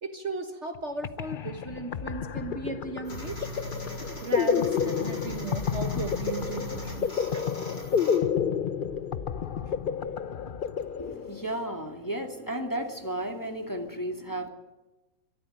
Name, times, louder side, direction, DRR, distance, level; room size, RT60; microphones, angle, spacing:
voice 1, 0.0-3.5 4.2-7.5, right 3 dB, 45° right, 7 dB, 1.8 m, -36 dB
sound 1, 0.7-0.8 1.0-11.6, left 7 dB, 45° left, 0.7 m, -30 dB
sound 2, 3.0-8.2, equal, 70° left, 7.2 m, -40 dB
voice 2, 11.0-14.5, right 1 dB, 10° left, 4 dB, 2.1 m, -33 dB
23.0 x 14.0 x 8.9 m, 1.1 s
omnidirectional pair, 1.7 m